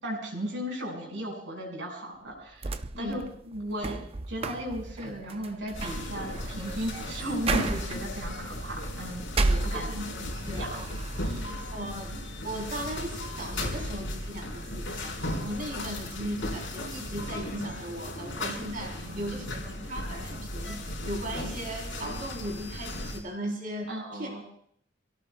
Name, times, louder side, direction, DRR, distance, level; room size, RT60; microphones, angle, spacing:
voice 1, 0.0-2.7 3.0-4.0 4.3-9.9 10.6-10.8 11.2-11.6 19.0-19.9 23.9-24.4, equal, 85° right, 0 dB, 5.4 m, -36 dB
sound 1, 2.3-10.3 10.7-11.5, right 3 dB, 30° right, 0.5 m, -34 dB
voice 2, 2.9-3.3 9.7-10.7 11.4-24.4, right 1 dB, 50° right, 1 dB, 3.4 m, -38 dB
sound 2, 5.7-23.2, left 1 dB, 85° left, 4.1 m, -36 dB
27.5 x 17.5 x 2.2 m, 0.64 s
head